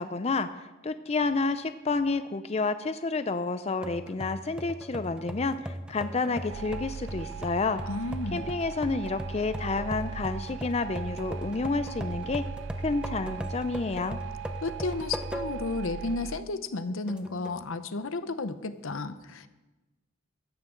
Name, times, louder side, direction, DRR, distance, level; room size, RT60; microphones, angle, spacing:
voice 1, 0.0-7.8 8.3-12.4 12.8-14.2, left 3 dB, 30° left, 11 dB, 0.5 m, -30 dB
sound 1, 3.8-15.8 16.2-16.3 17.1-17.7, equal, 5° right, 0.7 m, -38 dB
sound 2, 6.5-16.4, right 7 dB, 60° right, 0.4 m, -40 dB
voice 2, 7.9-8.4 14.6-19.5, left 3 dB, 80° left, 12 dB, 0.8 m, -33 dB
15.5 x 14.0 x 3.8 m, 1.1 s
head